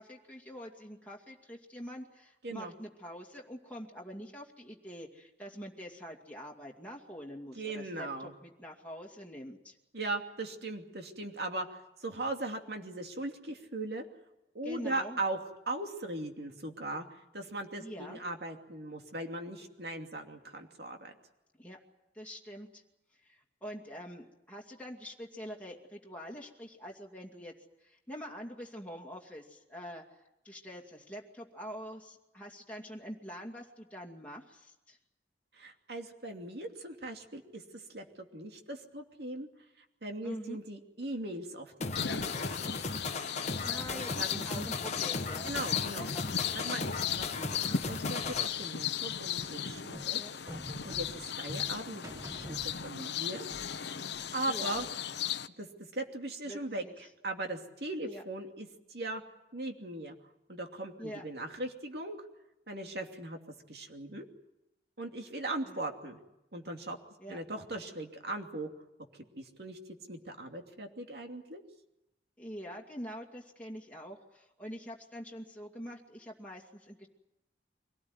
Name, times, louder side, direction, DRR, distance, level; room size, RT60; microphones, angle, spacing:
voice 1, 0.0-9.8 14.6-15.2 17.8-18.2 21.5-21.8 22.1-22.8 23.1-27.5 27.8-35.0 40.2-40.6 43.6-45.5 45.9-46.2 50.1-50.3 54.5-54.9 56.4-56.9 58.1-58.2 61.0-61.3 65.6-65.8 67.2-67.4 72.4-77.1, equal, 10° left, -2 dB, 2.4 m, -45 dB
voice 2, 7.6-8.3 9.9-14.0 14.5-17.0 17.3-21.1 35.5-39.5 40.0-43.0 43.9-44.7 45.4-46.1 46.5-50.2 50.8-52.0 52.4-54.0 54.3-54.9 55.6-55.7 55.9-56.8 57.2-59.2 59.5-60.2 60.5-62.3 62.7-63.4 63.7-64.2 65.0-66.2 66.5-67.0 67.3-68.7 69.4-69.8 70.1-71.6, right 2 dB, 65° right, 3 dB, 2.8 m, -39 dB
sound 1, 41.8-48.5, left 3 dB, 40° left, 1.1 m, -37 dB
sound 2, 41.9-55.5, left 8 dB, 75° left, 0.9 m, -36 dB
sound 3, 47.8-53.3 53.5-55.1, equal, 20° right, 1.4 m, -47 dB
24.5 x 18.5 x 9.6 m, 0.92 s
head